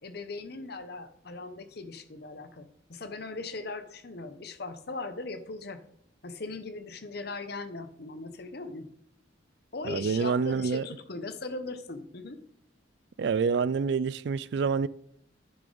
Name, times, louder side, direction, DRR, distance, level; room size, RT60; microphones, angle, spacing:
voice 1, 0.0-5.8 6.2-8.9 9.7-12.4, left 3 dB, 55° left, 0.8 m, -39 dB
voice 2, 9.9-10.9 13.2-14.9, right 5 dB, 60° right, 0.3 m, -27 dB
10.0 x 6.7 x 3.9 m
head